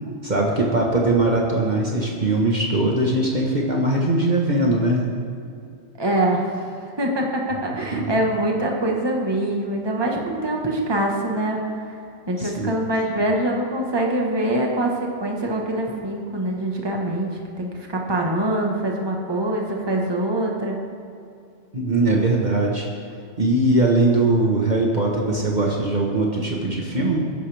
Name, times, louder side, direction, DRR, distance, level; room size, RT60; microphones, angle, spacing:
voice 1, 0.2-5.1 7.9-8.2 12.4-12.8 13.1-13.2 21.7-22.9 23.4-27.2, right 2 dB, 40° right, -2 dB, 1.5 m, -21 dB
voice 2, 6.0-6.7 7.0-11.6 12.3-14.9 15.2-17.3 17.6-20.8, right 1 dB, 20° right, 0 dB, 1.4 m, -24 dB
20.5 x 10.5 x 3.5 m, 2.6 s
omnidirectional pair, 1.2 m